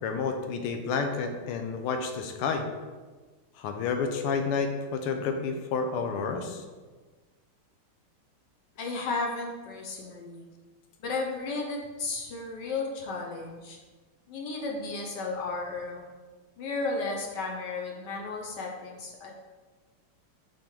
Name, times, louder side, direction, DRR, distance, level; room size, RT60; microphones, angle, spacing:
voice 1, 0.0-2.6 3.6-6.6, left 5 dB, 90° left, 5 dB, 1.6 m, -30 dB
voice 2, 8.8-10.5 11.0-13.8 14.3-16.0 16.6-19.4, left 3 dB, 60° left, 0 dB, 1.4 m, -34 dB
6.0 x 4.4 x 4.4 m, 1.3 s
omnidirectional pair, 2.4 m